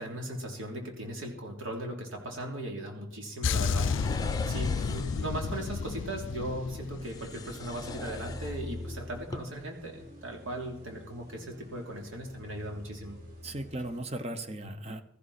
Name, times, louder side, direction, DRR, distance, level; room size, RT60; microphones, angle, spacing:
voice 1, 0.0-3.9 4.5-13.2, right 1 dB, 80° right, 1 dB, 3.3 m, -38 dB
sound 1, 3.4-8.0 8.2-8.5, left 5 dB, 70° left, 0.4 m, -32 dB
sound 2, 3.7-5.4 7.0-8.9 9.2-9.4, left 2 dB, 20° left, 0.7 m, -41 dB
sound 3, 5.5-14.0, left 1 dB, 45° right, 5.8 m, -46 dB
voice 2, 13.4-15.0, right 1 dB, 30° right, 9 dB, 0.9 m, -37 dB
16.5 x 14.0 x 4.3 m, 0.81 s
head